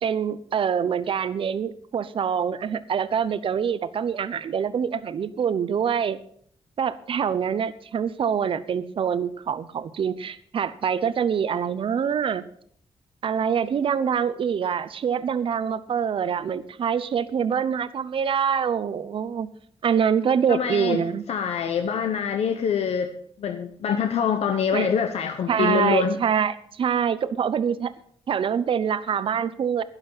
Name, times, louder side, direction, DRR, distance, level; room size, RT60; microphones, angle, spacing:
voice 1, 0.0-6.2 6.8-12.4 13.2-19.5 19.8-21.3 24.7-24.9 25.5-27.9 28.3-29.8, right 7 dB, 55° right, 15 dB, 0.8 m, -25 dB
voice 2, 20.5-21.0 21.3-23.1 23.4-26.2, left 7 dB, 80° left, 7 dB, 0.9 m, -25 dB
11.5 x 11.0 x 5.6 m, 0.62 s
wide cardioid pair, 155°, 10 cm